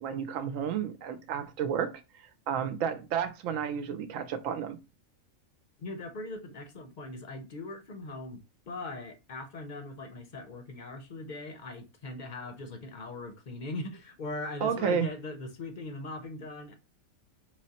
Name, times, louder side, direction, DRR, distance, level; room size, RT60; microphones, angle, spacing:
voice 1, 0.0-1.9 2.2-4.8 14.6-15.1, right 7 dB, 75° right, 1.0 m, -31 dB
voice 2, 5.8-16.7, left 2 dB, 45° left, 0.6 m, -40 dB
4.9 x 3.1 x 2.8 m
omnidirectional pair, 1.4 m